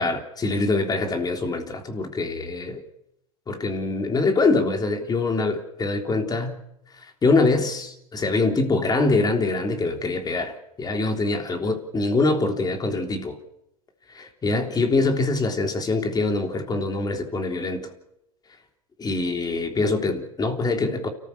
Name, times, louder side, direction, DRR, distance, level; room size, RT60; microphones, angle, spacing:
voice 1, 0.0-2.8 3.5-6.6 7.2-13.4 14.1-17.8 19.0-21.1, left 3 dB, 20° left, 3.5 m, -24 dB
30.0 x 14.5 x 7.0 m
hypercardioid pair, 110°, 19 cm